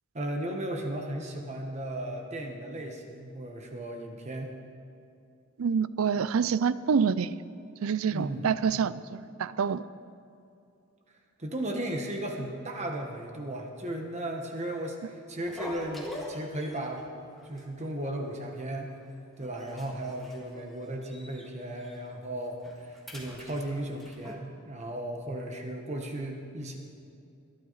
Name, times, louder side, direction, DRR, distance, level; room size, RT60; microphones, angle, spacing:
voice 1, 0.1-4.5 8.1-8.6 11.4-17.1 17.4-18.9 19.4-26.8, right 1 dB, 35° right, 2 dB, 1.2 m, -35 dB
voice 2, 5.6-7.4 7.8-9.8, right 6 dB, 80° right, 17 dB, 0.4 m, -27 dB
sound 1, 15.4-17.0 17.4-17.6 17.9-18.0 18.6-19.1 19.4-21.5 21.8-22.0 22.4-24.3, left 1 dB, ahead, 1.8 m, -44 dB
21.5 x 11.5 x 4.0 m, 2.6 s
head